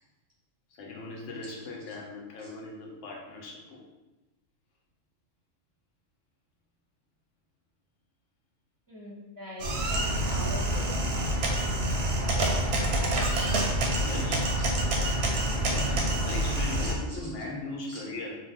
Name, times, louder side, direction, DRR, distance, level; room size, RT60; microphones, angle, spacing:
voice 1, 0.7-3.8 14.0-14.6 14.9-18.4, left 2 dB, 70° left, -1 dB, 0.9 m, -39 dB
voice 2, 8.9-10.0 10.3-10.9 14.6-14.7 16.8-16.9 17.9-18.0, equal, 20° right, -7 dB, 0.7 m, -41 dB
sound 1, 9.6-16.9, right 1 dB, 65° right, 0.7 m, -27 dB
2.6 x 2.0 x 3.6 m, 1.1 s
omnidirectional pair, 1.3 m